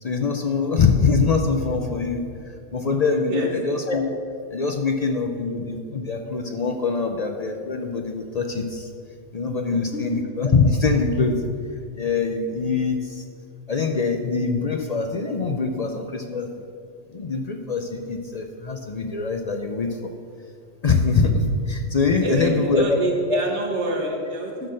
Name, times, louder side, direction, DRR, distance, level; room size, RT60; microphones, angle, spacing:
voice 1, 0.0-4.1 4.5-8.9 9.3-11.4 11.9-13.2 13.7-16.5 17.1-20.0 20.8-23.0 23.3-23.4, left 4 dB, 45° left, 4 dB, 0.5 m, -23 dB
voice 2, 9.7-10.2 22.2-24.7, right 2 dB, 85° right, 0 dB, 1.7 m, -28 dB
12.0 x 4.3 x 6.4 m, 2.5 s
omnidirectional pair, 1.2 m